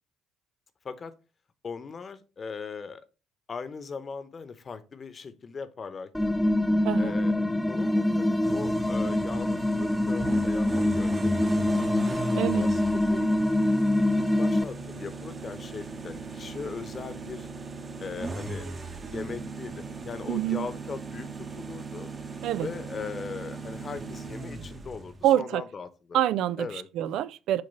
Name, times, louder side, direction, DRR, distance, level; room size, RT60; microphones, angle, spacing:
voice 1, 1.6-3.0 3.5-6.3 6.9-11.9 12.5-13.2 14.2-17.5 18.0-18.7 19.1-22.1 22.6-26.2 26.6-26.9, left 5 dB, 40° left, 1.1 m, -39 dB
sound 1, 6.1-14.6, left 1 dB, 10° left, 0.5 m, -25 dB
voice 2, 6.8-7.2 12.4-12.6 20.3-20.6 22.4-22.7 25.2-25.6 26.1-26.7 27.0-27.6, right 12 dB, 65° right, 0.4 m, -26 dB
sound 2, 8.4-25.2, right 3 dB, 35° right, 1.2 m, -38 dB
6.7 x 3.8 x 5.3 m
hypercardioid pair, 50°, 0 cm